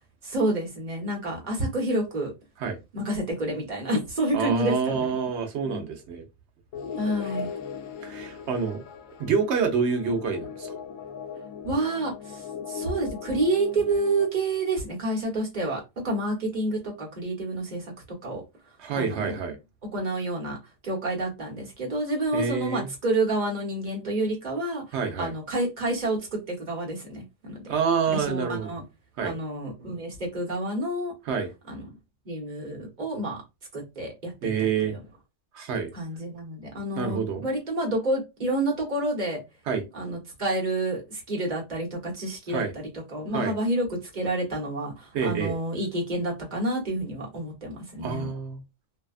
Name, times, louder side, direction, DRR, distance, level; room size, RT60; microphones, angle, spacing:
voice 1, 0.2-2.3 2.9-5.1 5.7-5.9 7.0-7.5 11.6-17.9 18.2-18.4 18.9-19.4 19.9-20.6 20.8-27.6 28.1-28.8 29.2-31.1 31.7-31.8 32.2-33.4 33.7-34.5 34.8-35.0 35.9-39.4 39.9-48.3, right 1 dB, 40° right, 1.1 m, -29 dB
voice 2, 4.3-6.2 8.0-8.8 9.2-10.7 18.8-19.6 22.3-22.9 24.9-25.3 27.7-28.7 29.2-29.3 31.3-31.5 34.4-35.0 35.5-35.9 37.0-37.4 39.7-39.8 42.5-42.7 43.3-43.5 45.1-45.5 48.0-48.6, right 6 dB, 65° right, 0.9 m, -27 dB
sound 1, 6.7-14.3, left 7 dB, 80° left, 0.9 m, -38 dB
2.6 x 2.3 x 2.3 m
omnidirectional pair, 1.4 m